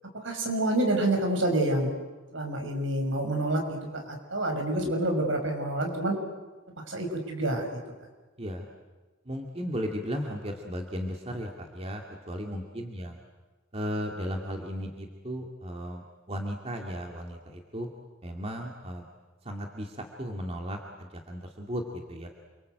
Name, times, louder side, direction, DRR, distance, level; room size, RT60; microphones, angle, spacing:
voice 1, 0.2-1.9 2.3-6.2 6.9-7.8, right 1 dB, 70° right, 3 dB, 6.0 m, -28 dB
voice 2, 9.3-13.2 13.7-17.9 18.2-19.0 19.4-22.3, equal, 30° right, 2 dB, 2.3 m, -35 dB
28.5 x 24.5 x 8.0 m, 1.2 s
head